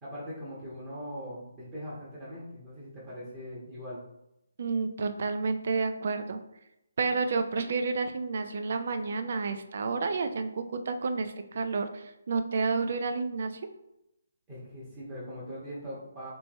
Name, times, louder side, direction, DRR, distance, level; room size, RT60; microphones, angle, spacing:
voice 1, 0.0-4.0 14.5-16.3, equal, 20° right, -9 dB, 1.2 m, -41 dB
voice 2, 4.6-6.4 7.0-13.6, right 4 dB, 55° right, 8 dB, 0.4 m, -30 dB
3.4 x 3.2 x 3.0 m, 0.85 s
hypercardioid pair, 155°, 0 cm